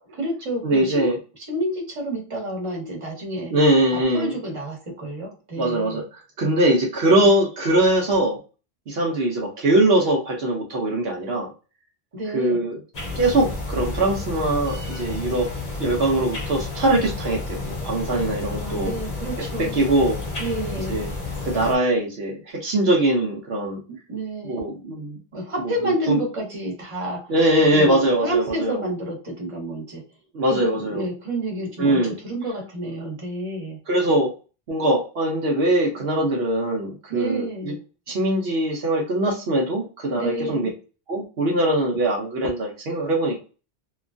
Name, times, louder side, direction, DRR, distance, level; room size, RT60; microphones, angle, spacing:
voice 1, 0.1-1.1 1.4-3.5 3.9-6.0 12.1-12.6 18.6-19.8 20.4-21.1 22.8-23.0 23.9-24.6 25.3-27.3 27.7-30.0 30.5-33.8 37.1-37.8 40.1-40.7, right 1 dB, 30° right, -2 dB, 1.1 m, -29 dB
voice 2, 0.6-1.2 3.5-4.3 5.6-8.4 8.9-11.5 12.3-12.8 13.2-15.5 15.8-18.9 19.4-19.5 19.7-20.2 20.9-21.1 21.5-23.8 24.4-25.2 25.6-26.2 27.3-28.8 30.3-31.0 31.8-32.1 33.9-34.3 34.7-37.7 38.1-40.7 41.1-43.4, right 1 dB, 70° right, -1 dB, 0.9 m, -22 dB
sound 1, 12.9-21.8, left 3 dB, 40° left, 0.8 m, -31 dB
3.0 x 2.2 x 2.4 m, 0.34 s
omnidirectional pair, 1.1 m